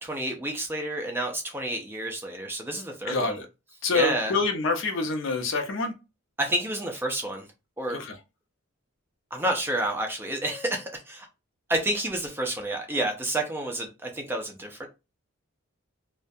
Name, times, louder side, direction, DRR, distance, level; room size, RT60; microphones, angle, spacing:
voice 1, 0.0-3.4 3.9-4.4 6.4-7.5 7.8-8.0 9.3-11.3 11.7-14.9, right 1 dB, 10° right, 0.4 m, -29 dB
voice 2, 3.1-3.4 3.8-5.9 7.9-8.1, left 3 dB, 60° left, 0.5 m, -26 dB
2.3 x 2.1 x 2.6 m
head